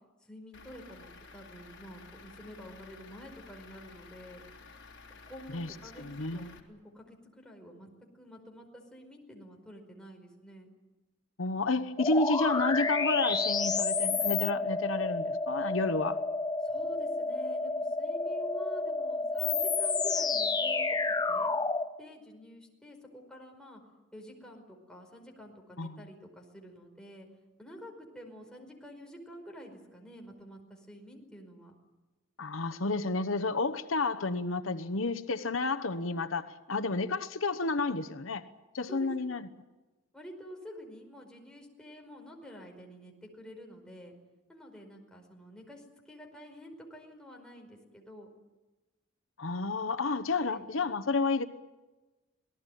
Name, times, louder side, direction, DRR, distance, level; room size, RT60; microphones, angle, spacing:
voice 1, 0.2-4.4 5.3-6.0 6.3-7.9 8.1-10.7 16.6-21.0 21.3-21.5 22.0-23.8 24.1-27.3 27.6-31.8 38.9-39.3 40.1-44.1 44.5-48.3 50.5-50.6, equal, 5° left, 5.1 m, -49 dB
Truck / Idling, 0.5-6.6, left 4 dB, 65° left, 3.6 m, -52 dB
voice 2, 6.0-6.6 11.4-16.2 25.8-26.0 32.4-38.4 38.7-39.4 49.4-51.4, left 3 dB, 85° left, 1.1 m, -31 dB
sound 1, 12.0-21.9, left 3 dB, 20° left, 0.9 m, -30 dB
27.5 x 19.0 x 9.3 m
head